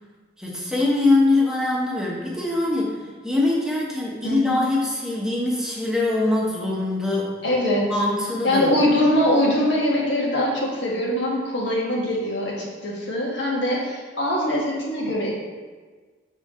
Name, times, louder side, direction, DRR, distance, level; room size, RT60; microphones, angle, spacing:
voice 1, 0.4-7.4 7.9-8.7, left 2 dB, 5° right, -5 dB, 1.0 m, -23 dB
voice 2, 4.2-4.6 7.4-7.8 8.4-15.3, left 1 dB, 70° left, -3 dB, 1.4 m, -22 dB
7.0 x 4.4 x 3.7 m, 1.4 s
head